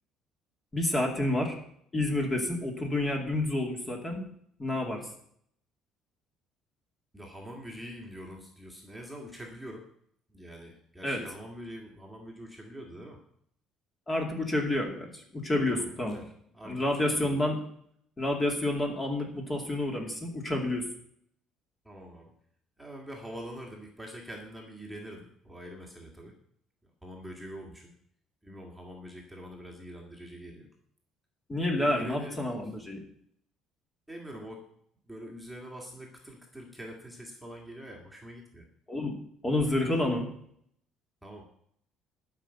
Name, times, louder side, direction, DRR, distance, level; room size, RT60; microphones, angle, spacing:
voice 1, 0.7-1.6 1.9-4.2 4.6-5.1 11.0-11.2 14.1-16.2 16.6-17.6 18.2-20.9 31.5-33.0 38.9-39.2 39.4-40.3, left 1 dB, 15° left, 2 dB, 2.4 m, -29 dB
voice 2, 7.1-9.9 10.3-13.2 15.7-17.4 21.8-22.3 22.8-26.4 27.0-27.9 28.4-30.7 31.8-32.4 34.1-34.6 35.0-38.7 41.2-41.4, equal, ahead, -1 dB, 2.1 m, -44 dB
12.5 x 5.8 x 9.0 m, 0.67 s
cardioid pair, 150°, 0 cm